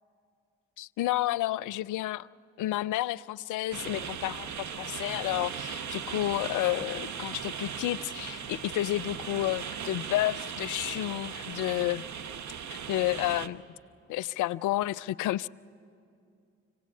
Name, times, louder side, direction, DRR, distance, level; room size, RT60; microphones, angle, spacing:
voice 1, 0.8-2.3 2.6-12.1 12.7-13.6 14.1-15.5, left 15 dB, 80° left, 20 dB, 0.5 m, -31 dB
sound 1, 3.7-13.5, right 7 dB, 65° right, 1.0 m, -38 dB
25.5 x 17.5 x 8.5 m, 2.5 s
hypercardioid pair, 40°, 30 cm